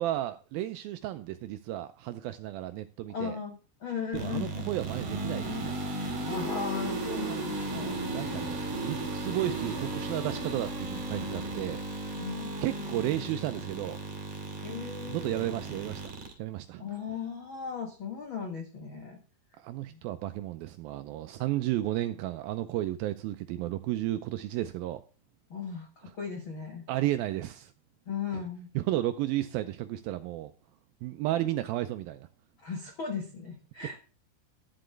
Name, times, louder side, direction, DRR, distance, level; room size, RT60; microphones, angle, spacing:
voice 1, 0.0-3.4 4.1-5.8 8.0-11.8 12.6-14.0 15.1-16.8 19.6-25.0 26.9-27.7 28.3-28.4 28.8-30.5 31.0-32.3, right 14 dB, 85° right, 2.1 m, -33 dB
voice 2, 3.1-4.7 6.2-8.8 12.2-12.7 14.6-15.6 16.8-19.2 19.9-20.0 25.5-26.8 28.1-28.7 32.6-34.0, left 6 dB, 90° left, 1.1 m, -37 dB
sound 1, 4.1-16.3, right 2 dB, 45° right, 2.8 m, -35 dB
11.5 x 7.6 x 3.3 m
omnidirectional pair, 4.7 m